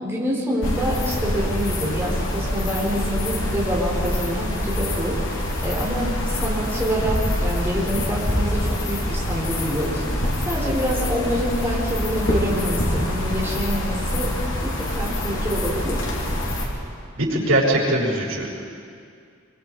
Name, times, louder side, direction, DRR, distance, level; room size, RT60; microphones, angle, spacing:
voice 1, 0.0-5.1 5.6-6.1 6.4-10.0 10.5-14.3 14.6-14.7 15.0-16.0, equal, 10° right, -6 dB, 4.7 m, -26 dB
sound 1, 0.6-16.7, left 1 dB, 75° left, 4.4 m, -25 dB
voice 2, 17.1-18.5, right 1 dB, 90° right, -5 dB, 6.9 m, -21 dB
27.0 x 24.5 x 5.0 m, 2.3 s
head